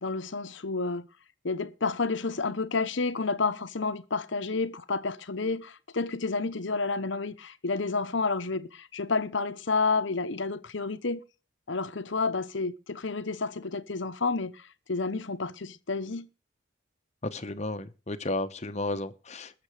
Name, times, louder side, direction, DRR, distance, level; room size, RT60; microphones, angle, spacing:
voice 1, 0.0-1.1 1.4-11.2 11.7-16.3, left 4 dB, 65° left, 0.9 m, -30 dB
voice 2, 17.3-19.6, left 2 dB, 35° left, 1.0 m, -33 dB
20.5 x 7.0 x 4.9 m
head